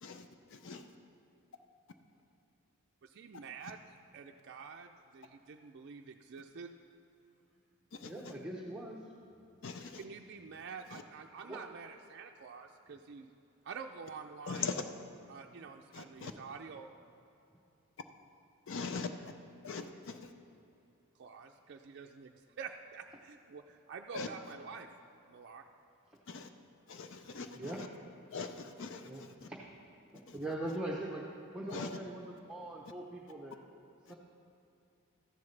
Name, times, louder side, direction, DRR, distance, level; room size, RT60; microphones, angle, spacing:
voice 1, 0.0-0.8 7.9-8.3 9.6-10.0 10.9-11.0 14.5-14.8 15.9-16.3 18.7-19.1 19.6-20.3 24.1-24.3 26.3-26.5 26.9-27.9 28.3-29.5 30.3-30.4 31.7-32.0 34.1-34.2, left 4 dB, 60° left, 0.5 m, -41 dB
voice 2, 3.0-6.7 10.0-13.3 13.6-14.7 15.3-16.9 21.2-24.9 25.3-25.6, right 5 dB, 55° right, 0.4 m, -48 dB
voice 3, 8.0-9.0 9.8-9.9 11.5-11.6 27.5-27.8 29.1-29.6 30.3-31.2 31.5-32.2 32.5-33.6 34.1-34.2, right 1 dB, 5° right, 0.7 m, -41 dB
13.5 x 10.5 x 3.3 m
head